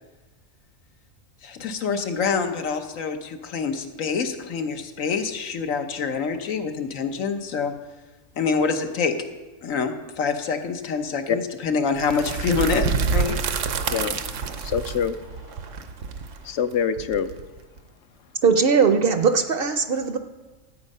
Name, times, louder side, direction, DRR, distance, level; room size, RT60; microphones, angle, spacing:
voice 1, 1.4-7.7 8.4-9.1 9.6-12.9 13.1-13.4, left 5 dB, 85° left, 6 dB, 1.4 m, -26 dB
sound 1, 12.0-17.8, right 5 dB, 75° right, 1.1 m, -27 dB
voice 2, 13.9-15.2 16.4-17.3, left 7 dB, 65° left, 11 dB, 0.9 m, -26 dB
voice 3, 18.4-20.2, right 5 dB, 55° right, 8 dB, 0.7 m, -19 dB
12.5 x 8.3 x 5.4 m, 1.2 s
omnidirectional pair, 1.3 m